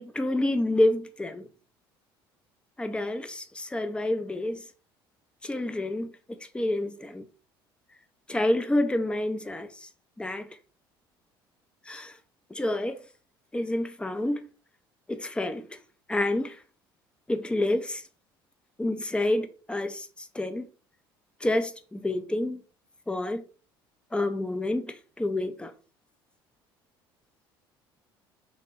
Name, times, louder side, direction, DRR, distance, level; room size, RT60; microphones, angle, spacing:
voice 1, 0.0-1.5 2.8-4.6 5.4-7.3 8.3-9.9 10.2-10.5 11.9-12.2 12.5-13.0 13.5-14.5 15.1-15.8 16.1-16.6 17.3-18.0 18.8-20.7 21.4-22.6 23.1-23.4 24.1-25.7, left 1 dB, 10° left, 0.5 m, -28 dB
3.3 x 2.1 x 4.3 m
hypercardioid pair, 60°, 12 cm